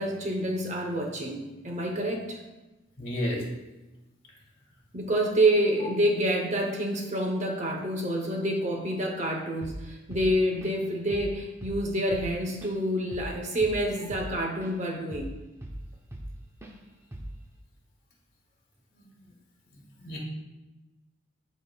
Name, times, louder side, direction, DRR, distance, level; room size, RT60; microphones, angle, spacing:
voice 1, 0.0-2.4 4.9-15.3, right 1 dB, 35° right, 1 dB, 0.9 m, -28 dB
voice 2, 3.0-3.4 18.9-19.0 19.7-20.2, equal, 45° left, -3 dB, 1.8 m, -32 dB
Drum kit / Drum, 9.6-9.9 10.1-10.9 11.1-11.4 11.6-14.8 15.1-16.4 16.6-16.8 17.1-17.5, right 1 dB, 15° right, 0.5 m, -39 dB
10.5 x 4.2 x 2.3 m, 1.1 s
head